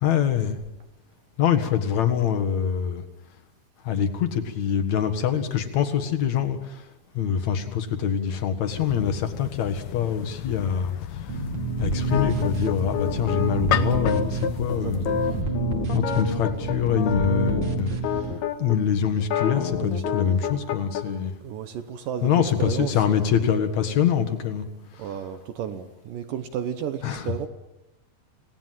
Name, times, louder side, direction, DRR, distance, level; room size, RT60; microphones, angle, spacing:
voice 1, 0.0-0.6 1.4-3.0 3.8-6.8 7.1-11.3 11.8-15.1 15.9-18.3 18.6-21.3 22.2-24.6 24.9-25.2 27.0-27.3, left 8 dB, 55° left, 8 dB, 2.6 m, -24 dB
sound 1, 8.7-15.4, left 10 dB, 70° left, 1.7 m, -33 dB
sound 2, 11.3-18.3, right 3 dB, 35° right, 2.4 m, -28 dB
sound 3, 12.1-18.8 19.2-21.0, left 8 dB, 85° left, 3.5 m, -29 dB
voice 2, 14.6-15.2 19.8-20.3 21.4-23.4 25.0-27.5, right 8 dB, 70° right, 8 dB, 2.5 m, -33 dB
27.0 x 18.5 x 7.6 m, 0.96 s
omnidirectional pair, 4.4 m